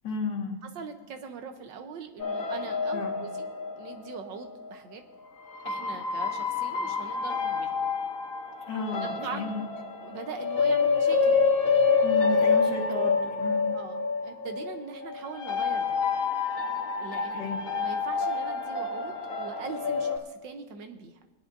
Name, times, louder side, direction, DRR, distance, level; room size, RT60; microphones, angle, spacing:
voice 1, 0.0-0.6 2.9-3.2 8.7-9.6 12.0-13.7 17.3-17.6, left 4 dB, 75° left, -5 dB, 2.1 m, -33 dB
voice 2, 0.6-3.5 3.7-5.0 5.7-7.7 9.0-9.5 10.0-11.4 13.7-16.0 17.0-21.2, right 5 dB, 85° right, 6 dB, 1.7 m, -41 dB
sound 1, 2.2-4.7 5.5-20.2, left 5 dB, 50° left, 1.5 m, -28 dB
20.0 x 10.5 x 2.7 m, 1.2 s
omnidirectional pair, 2.0 m